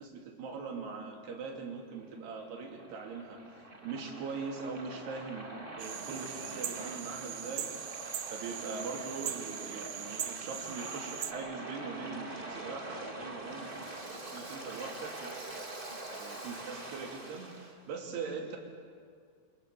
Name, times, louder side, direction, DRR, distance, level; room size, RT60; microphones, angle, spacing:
voice 1, 0.0-3.4 3.8-7.9 8.3-13.7 14.3-15.7 16.1-18.6, right 4 dB, 80° right, 1 dB, 5.0 m, -41 dB
Waves surf, 2.0-17.7, right 2 dB, 20° right, 1.5 m, -44 dB
sound 1, 5.8-11.3, right 9 dB, 65° right, 2.3 m, -40 dB
29.0 x 25.0 x 6.9 m, 2.1 s
omnidirectional pair, 4.6 m